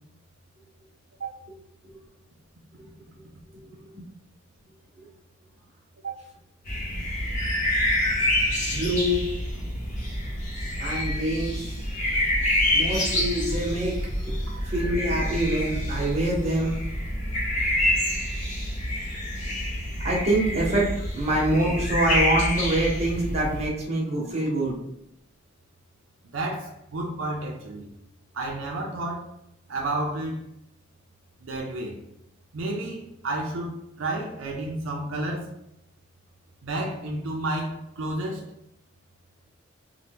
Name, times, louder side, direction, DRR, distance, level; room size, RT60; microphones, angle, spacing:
sound 1, 6.7-23.7, left 1 dB, 40° left, 0.8 m, -27 dB
voice 1, 8.7-9.3 10.8-11.9 12.3-12.4 12.7-16.7 20.0-24.7, right 1 dB, 35° right, -3 dB, 0.9 m, -26 dB
voice 2, 26.3-27.9 28.3-29.3 29.7-30.4 31.4-32.0 32.5-35.5 36.6-38.4, right 2 dB, 80° right, 0 dB, 0.5 m, -31 dB
2.8 x 2.2 x 3.4 m, 0.78 s
head